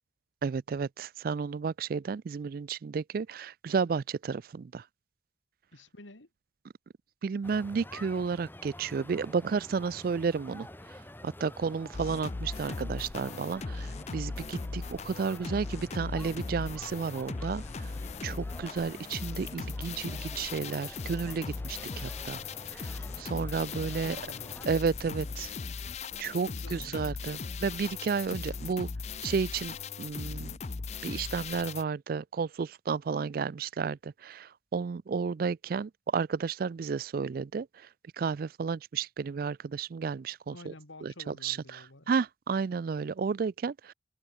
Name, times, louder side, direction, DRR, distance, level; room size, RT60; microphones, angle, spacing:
voice 1, 0.4-4.8 7.2-10.7 11.2-17.9 18.2-22.4 22.7-22.9 23.2-24.2 24.7-25.5 26.2-28.9 29.2-30.6 31.0-37.7 38.2-40.7 41.0-43.9, right 5 dB, 50° right, 0.3 m, -32 dB
voice 2, 5.7-6.3 24.0-24.7 26.5-27.1 40.5-42.1, left 1 dB, 90° left, 3.3 m, -50 dB
sound 1, 7.4-24.7, left 1 dB, 10° left, 3.4 m, -48 dB
sound 2, 11.9-31.8, left 4 dB, 35° left, 0.5 m, -38 dB
head